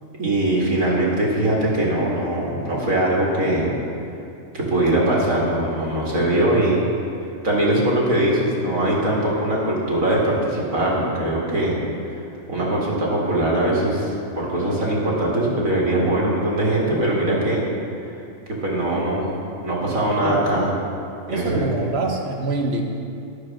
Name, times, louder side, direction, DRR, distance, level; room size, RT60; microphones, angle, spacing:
voice 1, 0.2-3.7 4.5-6.8 7.4-11.8 12.5-17.7 18.6-19.4 19.6-20.7 21.3-21.7, right 1 dB, 90° right, -4 dB, 2.4 m, -21 dB
voice 2, 21.3-22.8, right 2 dB, 55° right, 1 dB, 1.2 m, -25 dB
12.5 x 4.7 x 6.0 m, 2.6 s
omnidirectional pair, 1.4 m